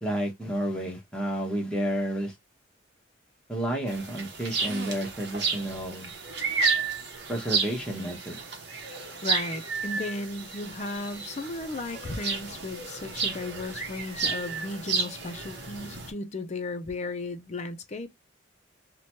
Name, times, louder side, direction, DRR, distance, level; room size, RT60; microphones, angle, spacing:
voice 1, 0.0-2.3 3.5-6.1 7.3-8.4, right 1 dB, 5° left, 0.9 m, -31 dB
sound 1, 3.9-16.1, right 4 dB, 60° right, 0.9 m, -32 dB
voice 2, 9.2-18.1, left 2 dB, 35° left, 0.4 m, -35 dB
2.9 x 2.2 x 2.8 m
head